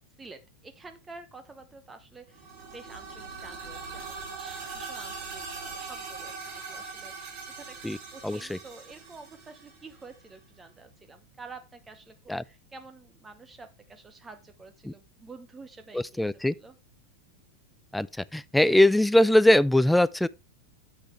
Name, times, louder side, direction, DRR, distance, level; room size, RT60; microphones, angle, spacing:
voice 1, 0.2-2.5 2.7-7.8 8.1-12.1 12.4-16.8, right 3 dB, 15° right, 1.0 m, -49 dB
sound 1, 2.3-10.1, right 4 dB, 45° right, 5.0 m, -41 dB
voice 2, 8.2-8.6 12.3-12.4 14.8-14.9 15.9-16.5 17.9-18.1 18.3-20.3, left 1 dB, 5° left, 0.4 m, -21 dB
9.9 x 8.2 x 3.3 m
figure-of-eight pair, 90°, 0 cm